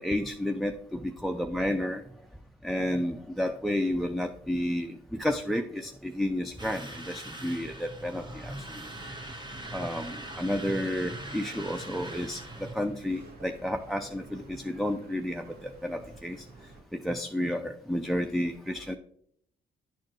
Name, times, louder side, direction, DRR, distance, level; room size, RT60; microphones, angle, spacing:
voice 1, 0.0-2.0 2.6-8.9 9.7-16.5 16.9-19.0, left 1 dB, ahead, 7 dB, 0.4 m, -31 dB
sound 1, 6.6-12.7, right 1 dB, 20° right, 1.5 m, -42 dB
sound 2, 8.8-16.8, right 2 dB, 55° right, 1.8 m, -50 dB
10.5 x 4.3 x 3.1 m, 0.70 s
cardioid pair, 90°, 20 cm